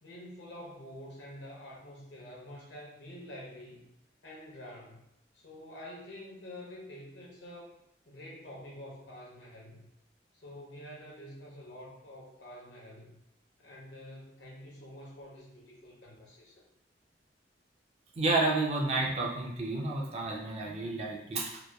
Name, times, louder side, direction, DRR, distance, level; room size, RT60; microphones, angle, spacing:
voice 1, 0.0-3.9 4.2-5.0 5.3-7.7 8.1-9.9 10.3-13.2 13.6-16.6, left 1 dB, 85° left, -3 dB, 0.8 m, -47 dB
voice 2, 18.2-21.6, right 2 dB, 35° right, -1 dB, 0.4 m, -30 dB
2.9 x 2.2 x 2.2 m, 0.79 s
head